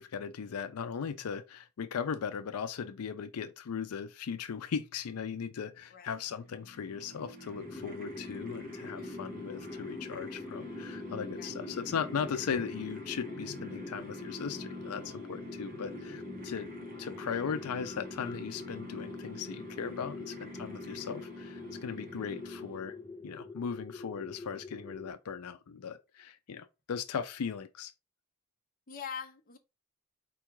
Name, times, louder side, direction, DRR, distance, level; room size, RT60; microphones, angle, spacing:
voice 1, 0.0-16.7 17.0-23.0 23.2-27.9, left 6 dB, 90° left, 0.4 m, -38 dB
sound 1, 6.4-23.0, left 1 dB, 40° right, 1.0 m, -46 dB
sound 2, 7.6-25.1, left 3 dB, 15° left, 0.3 m, -45 dB
voice 2, 28.9-29.6, left 6 dB, 40° left, 0.7 m, -43 dB
4.6 x 2.3 x 4.5 m
head